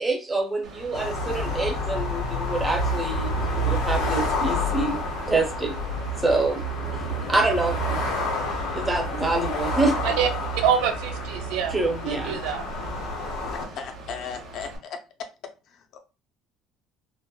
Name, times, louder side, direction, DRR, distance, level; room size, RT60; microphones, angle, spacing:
voice 1, 0.0-5.8 6.2-6.6 7.3-8.0 8.7-10.2 11.7-12.4, right 2 dB, 10° right, 2 dB, 0.5 m, -26 dB
Mechanical fan, 0.6-14.8, right 1 dB, 55° right, 0.8 m, -43 dB
sound 1, 0.9-13.7, left 1 dB, 70° left, 1.0 m, -28 dB
voice 2, 10.0-11.8 12.0-13.0, right 8 dB, 90° right, 5 dB, 0.5 m, -26 dB
voice 3, 13.5-15.0 15.7-16.0, left 6 dB, 45° left, 6 dB, 0.4 m, -37 dB
2.9 x 2.0 x 2.2 m, 0.29 s
cardioid pair, 175°, 0 cm